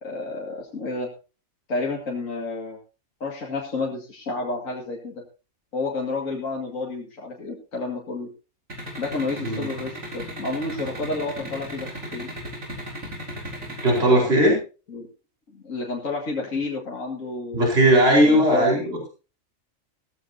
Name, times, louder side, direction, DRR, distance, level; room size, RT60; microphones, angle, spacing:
voice 1, 0.0-1.1 1.7-2.8 3.2-5.2 5.7-8.3 9.0-12.3 13.9-14.4 14.9-15.1 15.5-17.7 18.2-18.8, left 3 dB, 70° left, -2 dB, 2.5 m, -30 dB
sound 1, 8.7-14.0, right 1 dB, 75° right, 5.0 m, -35 dB
voice 2, 13.8-14.5 17.5-19.1, right 1 dB, 50° right, -1 dB, 4.9 m, -18 dB
16.0 x 14.5 x 2.8 m, 0.33 s
omnidirectional pair, 1.4 m